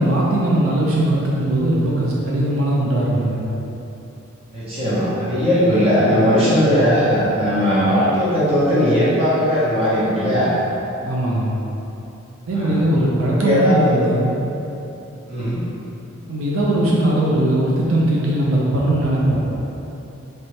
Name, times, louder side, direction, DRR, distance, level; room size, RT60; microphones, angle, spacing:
voice 1, 0.0-3.4 11.0-11.5 12.5-14.4 16.3-19.4, right 1 dB, 85° right, -5 dB, 0.7 m, -19 dB
voice 2, 4.5-10.5 12.5-12.8 13.4-14.0 15.3-15.6, equal, 30° right, -10 dB, 1.2 m, -18 dB
4.3 x 3.3 x 3.2 m, 3.0 s
head